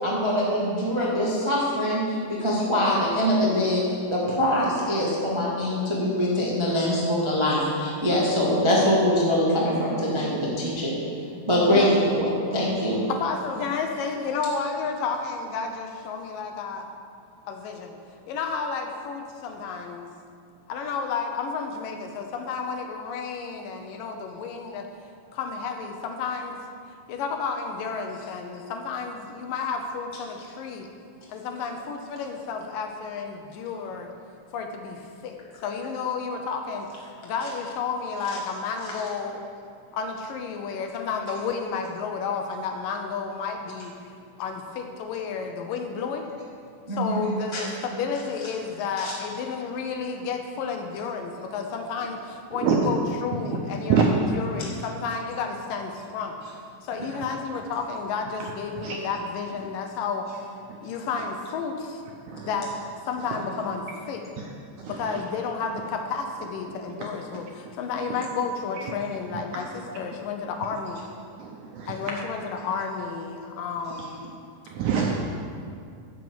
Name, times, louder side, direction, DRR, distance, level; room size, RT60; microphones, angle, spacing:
voice 1, 0.0-3.8 4.1-11.0 11.5-13.0 46.9-47.6 49.0-49.1, equal, 40° right, -6 dB, 0.4 m, -23 dB
voice 2, 13.1-16.9 17.5-18.0 18.3-20.1 20.7-24.9 25.3-26.6 27.1-30.9 31.3-34.1 34.5-39.4 39.9-43.9 44.4-46.3 46.9-56.4 56.8-60.3 60.8-62.0 62.5-62.7 63.1-64.2 64.9-71.0 71.9-74.3, left 5 dB, 75° left, 4 dB, 2.2 m, -31 dB
voice 3, 52.6-52.9 53.9-54.1 57.0-57.3 58.8-59.1 62.3-62.5 64.4-64.5 64.8-65.2 67.0-67.1 68.8-68.9 71.4-72.1 74.7-75.2, right 6 dB, 75° right, 0 dB, 1.8 m, -26 dB
11.0 x 6.2 x 7.8 m, 2.4 s
omnidirectional pair, 4.3 m